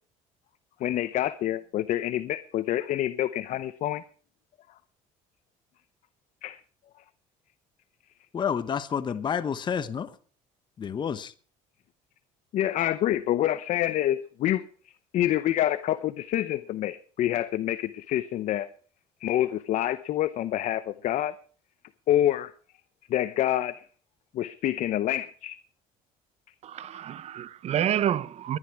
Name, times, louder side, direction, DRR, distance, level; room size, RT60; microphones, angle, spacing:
voice 1, 0.8-4.0 6.4-6.6 12.5-14.6 15.1-18.7 19.2-21.3 22.1-22.5 23.1-23.8 24.3-25.6, left 12 dB, 55° left, 0.7 m, -27 dB
voice 2, 8.3-10.1 10.8-11.3, left 7 dB, 30° left, 0.9 m, -29 dB
voice 3, 26.6-28.6, right 10 dB, 50° right, 0.9 m, -28 dB
20.5 x 10.5 x 4.7 m
cardioid pair, 115°, 15 cm